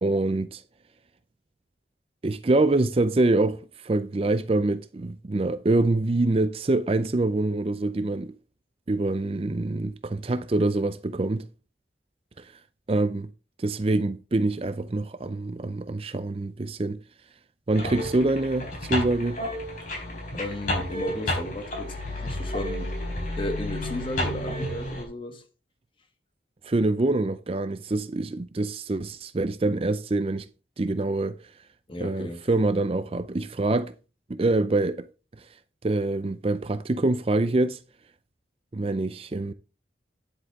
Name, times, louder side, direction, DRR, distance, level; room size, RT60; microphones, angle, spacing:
voice 1, 0.0-0.6 2.2-8.3 8.9-11.5 12.4-12.5 12.9-13.3 13.6-17.0 17.7-19.4 26.6-30.5 30.8-31.4 32.0-33.9 34.3-35.1 35.8-37.8 38.7-39.5, right 2 dB, 30° right, 0.5 m, -25 dB
sound 1, 17.7-25.0, left 1 dB, 45° left, 4.0 m, -31 dB
voice 2, 20.3-23.0 23.4-25.4 31.9-32.4, left 1 dB, 30° left, 1.4 m, -34 dB
10.0 x 8.0 x 3.6 m
head